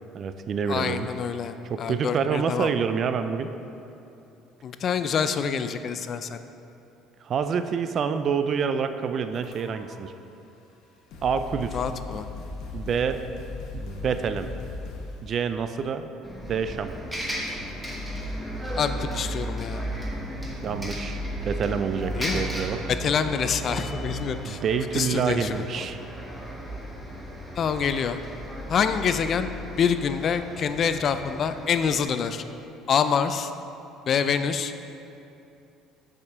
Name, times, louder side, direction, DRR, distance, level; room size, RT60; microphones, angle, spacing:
voice 1, 0.1-1.1 1.7-3.5 7.2-10.1 11.2-11.8 12.7-13.2 13.7-14.5 15.2-16.1 16.4-16.9 20.6-22.8 24.4-26.0, right 6 dB, 50° right, 9 dB, 0.3 m, -27 dB
voice 2, 0.7-2.7 4.6-6.4 11.7-12.3 18.8-19.8 22.2-22.4 23.0-24.6 24.9-25.7 27.6-28.2 28.7-32.4 32.9-33.5 34.1-34.7, left 7 dB, 50° left, 10 dB, 0.3 m, -26 dB
sound 1, 9.3-10.0 10.7-10.8 11.1-15.3, left 3 dB, 65° left, 0.9 m, -38 dB
Bus, 16.2-32.0, equal, 10° right, 1.1 m, -34 dB
7.0 x 4.9 x 3.6 m, 2.8 s
supercardioid pair, 95°, 0 cm